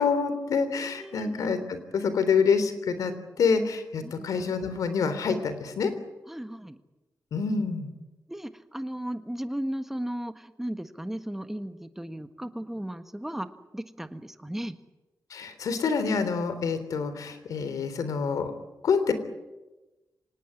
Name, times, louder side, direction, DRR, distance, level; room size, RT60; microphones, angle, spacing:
voice 1, 0.0-5.9 7.3-7.9 15.3-18.5 18.8-19.1, left 5 dB, 90° left, 11 dB, 3.5 m, -27 dB
voice 2, 0.8-1.5 4.0-4.3 6.3-6.8 8.3-13.5 13.7-14.7, right 1 dB, 5° right, 9 dB, 1.5 m, -35 dB
25.5 x 19.0 x 9.7 m, 1.1 s
wide cardioid pair, 120°, 6 cm